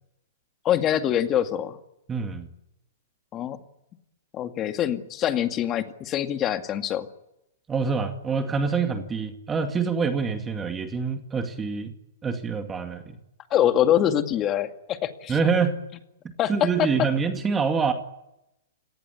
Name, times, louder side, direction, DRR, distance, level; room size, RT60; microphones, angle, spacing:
voice 1, 0.6-1.8 3.3-3.6 4.3-7.1 13.5-15.3 16.4-16.5, left 10 dB, 25° left, 8 dB, 2.1 m, -24 dB
voice 2, 2.1-2.5 7.7-11.9 12.2-13.2 15.3-15.8 16.5-17.9, right 5 dB, 15° right, 6 dB, 2.3 m, -26 dB
29.0 x 18.0 x 9.9 m, 0.86 s
hypercardioid pair, 135°, 0 cm